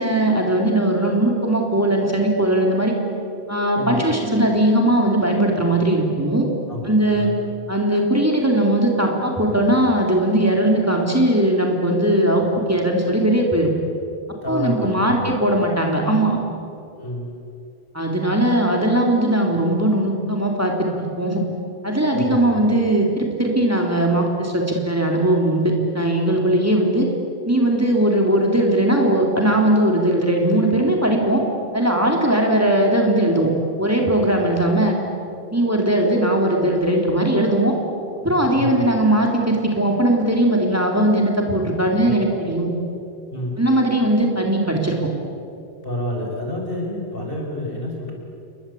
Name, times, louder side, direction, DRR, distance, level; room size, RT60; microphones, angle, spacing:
voice 1, 0.0-2.9 3.5-6.5 6.8-7.3 7.7-13.7 14.5-16.4 17.9-21.4 21.8-27.1 27.5-31.4 31.7-33.5 33.8-35.0 35.5-37.8 38.2-42.7 43.6-45.0, right 1 dB, 15° right, 0 dB, 3.5 m, -19 dB
voice 2, 3.8-4.2 6.7-7.3 14.4-15.2 17.0-17.3 22.1-22.5 38.5-38.9 42.0-42.4 43.3-43.6 45.8-48.1, left 1 dB, 55° left, -1 dB, 6.3 m, -28 dB
29.0 x 23.5 x 8.6 m, 2.6 s
omnidirectional pair, 1.1 m